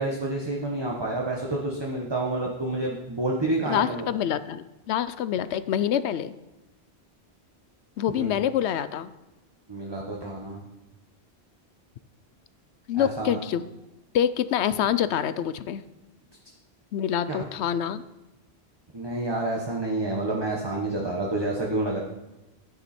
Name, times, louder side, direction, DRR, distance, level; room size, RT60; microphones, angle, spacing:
voice 1, 0.0-4.0 8.1-8.3 9.7-10.6 13.0-13.4 17.3-17.5 18.9-22.0, right 2 dB, 25° right, -2 dB, 1.3 m, -29 dB
voice 2, 3.7-6.3 8.0-9.1 12.9-13.7 14.1-15.8 16.9-18.0, left 10 dB, 90° left, 15 dB, 0.9 m, -26 dB
11.5 x 9.3 x 4.3 m, 1.0 s
omnidirectional pair, 1.1 m